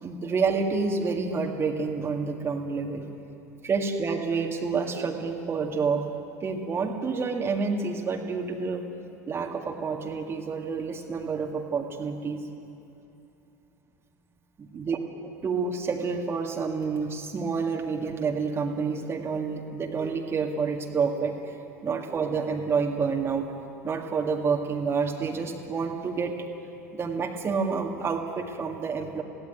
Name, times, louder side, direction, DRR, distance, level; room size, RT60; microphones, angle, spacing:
voice 1, 0.0-3.1 3.6-6.0 6.4-8.8 9.3-12.4 14.8-15.0 15.4-23.5 23.8-26.3 26.9-29.2, right 5 dB, 25° right, 1 dB, 2.0 m, -28 dB
22.5 x 16.5 x 9.3 m, 2.9 s
figure-of-eight pair, 75°, 9 cm